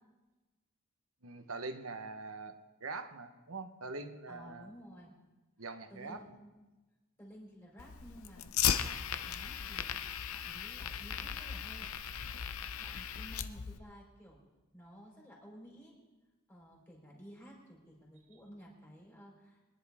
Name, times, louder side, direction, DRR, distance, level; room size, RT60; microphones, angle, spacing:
voice 1, 1.2-4.7 5.6-6.2, right 3 dB, 75° right, 8 dB, 1.1 m, -43 dB
voice 2, 4.3-5.1 5.9-6.6 7.2-10.0 10.3-11.9 12.8-14.4 14.7-15.9 16.5-19.6, equal, 10° left, -3 dB, 4.0 m, -54 dB
Fire, 7.8-13.8, left 8 dB, 80° left, 0.7 m, -37 dB
24.0 x 10.5 x 3.6 m, 1.2 s
head